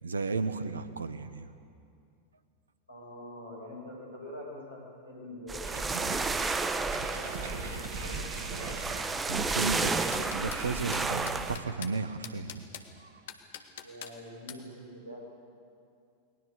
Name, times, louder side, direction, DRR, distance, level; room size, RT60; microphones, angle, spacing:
voice 1, 0.0-1.5 9.3-12.7 13.0-13.1, right 4 dB, 70° right, 12 dB, 1.2 m, -34 dB
voice 2, 2.9-6.5 7.1-8.9 13.8-15.2, left 1 dB, 80° left, -2 dB, 8.0 m, -45 dB
sound 1, 5.5-11.6, right 3 dB, 15° right, 1.1 m, -32 dB
sound 2, 5.6-11.9, right 4 dB, 55° right, 2.3 m, -42 dB
sound 3, 9.7-10.6 10.9-11.9 12.2-12.9 13.3-14.1 14.5-14.6, left 10 dB, 55° left, 1.7 m, -43 dB
30.0 x 21.0 x 6.8 m, 2.5 s
figure-of-eight pair, 90°, 0 cm